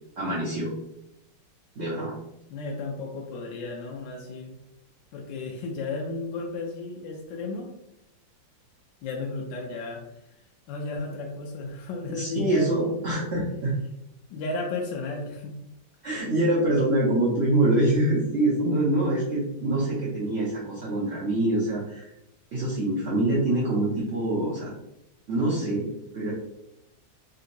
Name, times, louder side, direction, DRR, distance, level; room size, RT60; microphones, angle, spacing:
voice 1, 0.2-0.7 1.8-2.1 12.1-13.7 16.0-22.1 22.5-24.7 25.3-26.3, right 1 dB, 55° right, -8 dB, 0.7 m, -25 dB
voice 2, 2.5-4.5 5.1-7.7 9.0-10.0 10.7-13.1 14.3-15.6, left 3 dB, 80° left, 0 dB, 1.2 m, -34 dB
3.8 x 2.8 x 2.5 m, 0.84 s
omnidirectional pair, 2.0 m